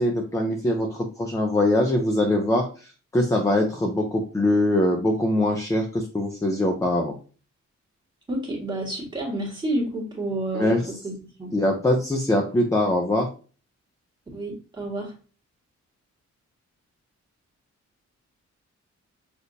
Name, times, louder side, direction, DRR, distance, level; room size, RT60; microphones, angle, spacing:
voice 1, 0.0-2.7 3.1-7.2 10.5-10.8 11.5-13.3, left 1 dB, 10° left, 1 dB, 0.5 m, -22 dB
voice 2, 8.3-11.5 14.3-15.1, right 1 dB, 15° right, -3 dB, 1.6 m, -30 dB
6.2 x 2.6 x 2.7 m, 0.36 s
wide cardioid pair, 160°, 29 cm